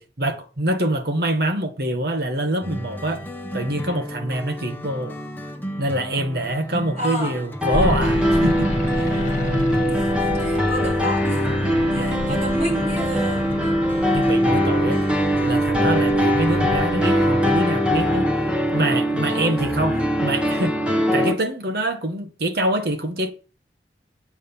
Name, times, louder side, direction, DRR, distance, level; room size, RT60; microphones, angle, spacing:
voice 1, 0.0-5.1 5.8-9.2 11.9-12.4 14.1-15.0 15.4-18.3 18.7-20.8 21.1-23.3, right 1 dB, 60° right, 1.4 m, -25 dB
sound 1, 2.6-16.9, equal, 10° left, 1.3 m, -34 dB
voice 2, 6.9-7.3 9.9-10.1 10.4-11.4 11.9-13.7 15.9-16.2 19.2-19.5 19.9-20.1, right 1 dB, 35° right, 5.6 m, -31 dB
sound 2, 7.6-21.3, equal, 5° right, 1.4 m, -21 dB
sound 3, 7.7-17.6, left 1 dB, 40° left, 1.6 m, -30 dB
8.6 x 5.0 x 7.2 m
head